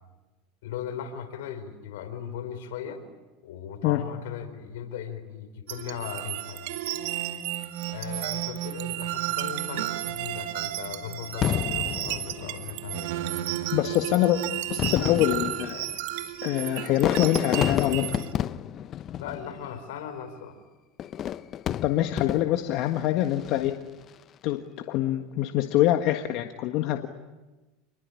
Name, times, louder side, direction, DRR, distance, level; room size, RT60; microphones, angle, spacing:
voice 1, 0.6-3.0 3.4-6.8 7.9-13.1 19.2-20.6, left 8 dB, 80° left, 9 dB, 4.6 m, -38 dB
sound 1, 5.7-18.3, right 14 dB, 75° right, 2.1 m, -33 dB
Fireworks, 11.4-13.0 13.9-14.0 14.6-19.9 21.0-22.8 23.3-23.8, left 10 dB, 40° left, 0.9 m, -30 dB
voice 2, 13.7-14.4 14.7-15.8 16.4-18.1 21.8-23.7 24.4-24.6 24.9-27.1, left 14 dB, 60° left, 6 dB, 1.6 m, -25 dB
28.5 x 21.5 x 9.9 m, 1.2 s
supercardioid pair, 110°, 0 cm